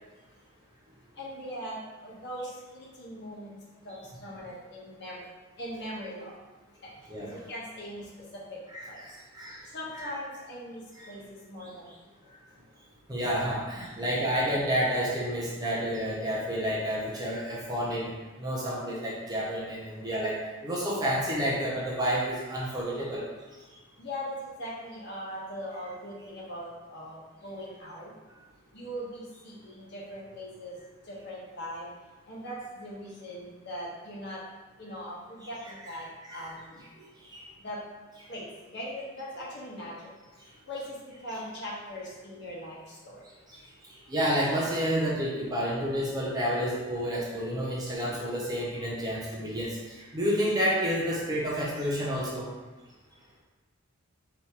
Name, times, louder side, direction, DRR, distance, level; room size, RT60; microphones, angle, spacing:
voice 1, 1.1-5.3 5.6-6.4 6.7-8.6 8.8-9.0 9.6-12.3 24.0-28.1 28.7-30.8 31.0-31.9 32.2-34.4 34.8-36.8 37.6-37.8 38.3-40.1 40.7-43.3, equal, 55° left, -6 dB, 1.1 m, -40 dB
voice 2, 8.7-9.6 9.9-10.1 11.0-11.1 11.6-11.7 13.1-18.1 18.4-23.3 36.3-36.5 37.0-37.1 37.3-37.4 43.5-43.6 44.1-52.5, equal, 20° right, -5 dB, 0.6 m, -30 dB
4.2 x 3.4 x 2.9 m, 1.2 s
head